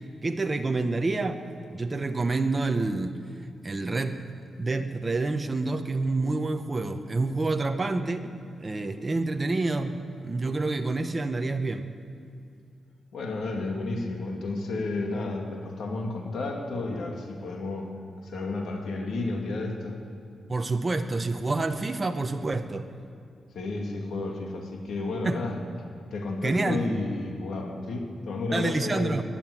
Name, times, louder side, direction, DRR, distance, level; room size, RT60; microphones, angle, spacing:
voice 1, 0.2-1.4 1.7-3.2 3.6-4.2 4.6-8.3 8.6-11.9 20.5-22.9 25.2-25.4 26.4-26.9 28.5-29.2, right 3 dB, 25° right, 6 dB, 0.9 m, -28 dB
voice 2, 13.1-17.9 18.2-20.0 23.5-25.5 26.1-29.2, left 2 dB, 75° left, 1 dB, 2.3 m, -32 dB
13.5 x 11.0 x 9.9 m, 2.5 s
cardioid pair, 115°, 0 cm